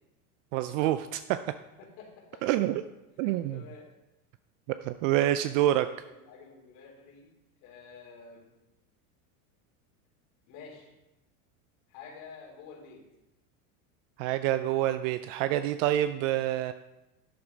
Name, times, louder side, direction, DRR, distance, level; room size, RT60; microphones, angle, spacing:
voice 1, 0.5-1.4 2.4-2.8 3.2-3.6 4.8-5.9 14.2-16.7, right 13 dB, 60° right, 11 dB, 0.5 m, -27 dB
voice 2, 1.8-2.4 3.2-3.9 5.2-7.3 7.6-8.4 10.5-10.9 11.9-13.0, left 5 dB, 60° left, -2 dB, 3.9 m, -49 dB
11.5 x 8.9 x 4.0 m, 0.96 s
supercardioid pair, 120°, 43 cm